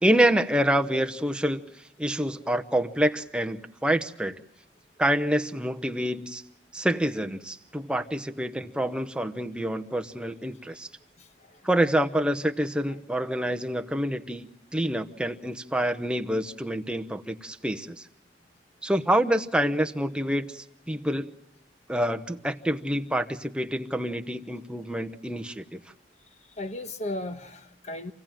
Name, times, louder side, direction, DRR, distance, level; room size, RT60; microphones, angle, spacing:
voice 1, 0.0-1.6 2.0-4.4 5.0-6.4 6.7-10.9 11.6-18.1 18.8-21.3 21.9-25.8, right 1 dB, 5° right, 5 dB, 0.9 m, -27 dB
voice 2, 11.2-11.7 12.9-13.0 26.4-28.1, left 1 dB, 40° left, 9 dB, 1.3 m, -36 dB
27.5 x 16.5 x 9.0 m, 0.86 s
head